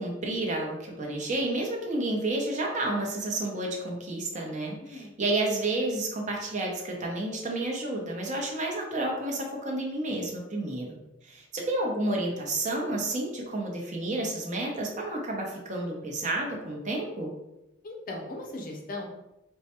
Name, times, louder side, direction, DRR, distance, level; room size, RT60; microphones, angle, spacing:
voice 1, 0.0-11.0 11.2-17.3, right 2 dB, 40° right, 0 dB, 0.7 m, -30 dB
voice 2, 4.8-5.1 17.8-19.1, left 2 dB, 45° left, 2 dB, 0.6 m, -38 dB
4.5 x 2.1 x 2.9 m, 0.91 s
head